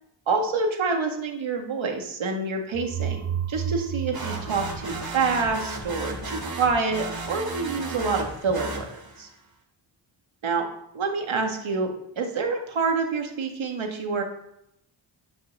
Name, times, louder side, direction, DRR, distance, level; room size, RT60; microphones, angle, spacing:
voice 1, 0.3-9.3 10.4-10.7 10.9-14.2, right 4 dB, 75° right, 3 dB, 2.0 m, -27 dB
sound 1, 2.7-5.6, right 9 dB, 30° right, 0.5 m, -32 dB
sound 2, 4.1-9.3, right 3 dB, 50° right, 2.9 m, -34 dB
10.0 x 5.6 x 7.3 m, 0.79 s
cardioid pair, 75°, 47 cm